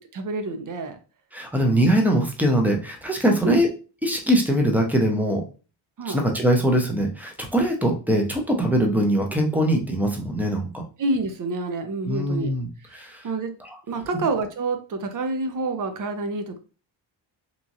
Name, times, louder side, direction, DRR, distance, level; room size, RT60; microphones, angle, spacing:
voice 1, 0.1-1.0 3.4-3.6 6.0-6.2 11.0-12.5 12.9-13.5 13.9-16.6, right 3 dB, 40° right, 7 dB, 0.7 m, -28 dB
voice 2, 1.3-3.7 4.0-5.4 6.0-10.8 12.1-13.3 13.6-13.8 14.1-14.2, equal, 5° right, 2 dB, 0.7 m, -22 dB
3.0 x 2.4 x 2.6 m, 0.35 s
cardioid pair, 75°, 47 cm